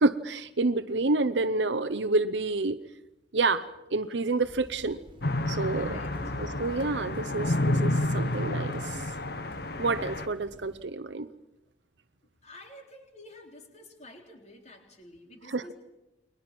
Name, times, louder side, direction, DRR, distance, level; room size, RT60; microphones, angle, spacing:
voice 1, 0.0-2.8 3.3-5.0 5.5-6.0 6.4-9.0 9.8-11.3 15.4-15.7, right 3 dB, 75° right, 10 dB, 0.7 m, -28 dB
sound 1, 4.4-10.8, equal, 25° right, 2.7 m, -48 dB
sound 2, 5.2-10.3, left 1 dB, 60° left, 1.4 m, -30 dB
voice 2, 5.7-6.1 12.4-15.8, left 1 dB, 35° left, 3 dB, 3.7 m, -50 dB
29.5 x 22.0 x 6.1 m, 0.96 s
head